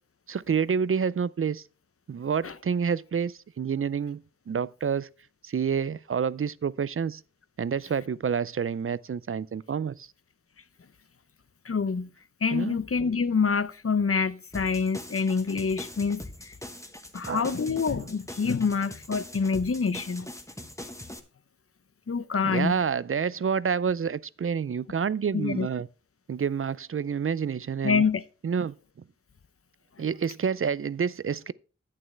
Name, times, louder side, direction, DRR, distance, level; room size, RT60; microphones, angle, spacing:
voice 1, 0.3-1.6 2.1-4.2 4.5-5.1 5.4-7.2 7.6-10.1 12.5-12.8 17.3-17.5 22.4-25.9 26.3-28.0 28.4-28.7 30.0-31.5, right 6 dB, 45° right, 0.4 m, -28 dB
voice 2, 11.6-12.1 12.4-16.5 17.1-20.3 22.1-22.8 25.3-25.7 27.8-28.2, left 5 dB, 50° left, 0.6 m, -26 dB
sound 1, 14.5-21.2, left 1 dB, 10° left, 1.1 m, -42 dB
11.0 x 8.8 x 3.2 m
wide cardioid pair, 65°, 31 cm